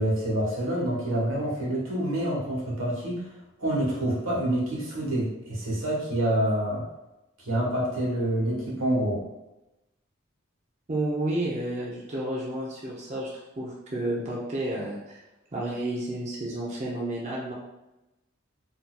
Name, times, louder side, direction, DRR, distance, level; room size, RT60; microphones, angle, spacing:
voice 1, 0.0-3.3 3.6-6.8 7.4-9.2, right 1 dB, 80° right, -4 dB, 1.2 m, -27 dB
voice 2, 10.9-13.3 13.6-15.2 15.5-17.5, right 1 dB, 35° right, -5 dB, 0.5 m, -31 dB
4.1 x 2.6 x 2.2 m, 0.97 s
head